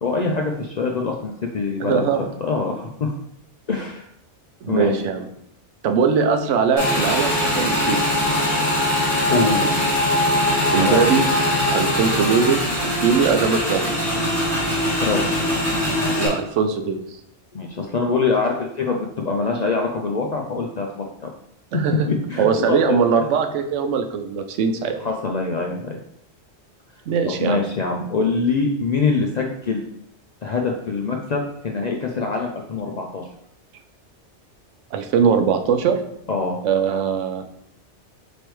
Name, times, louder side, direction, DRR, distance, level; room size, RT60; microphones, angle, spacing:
voice 1, 0.0-3.1 3.7-4.0 4.7-4.9 9.3-10.1 10.8-11.0 15.0-15.3 17.5-21.3 22.1-22.8 25.0-26.0 27.2-29.8 30.4-33.3 36.3-36.6, left 4 dB, 60° left, 1 dB, 0.4 m, -24 dB
voice 2, 1.8-2.3 4.6-5.3 5.8-8.0 10.7-11.3 11.7-13.9 16.2-17.0 21.7-22.1 22.4-24.9 27.1-27.6 34.9-36.0 36.6-37.5, right 6 dB, 85° right, 6 dB, 0.9 m, -21 dB
Motorcycle / Engine, 6.8-16.3, left 1 dB, 20° left, 1.6 m, -21 dB
5.1 x 3.2 x 3.1 m, 0.73 s
omnidirectional pair, 1.2 m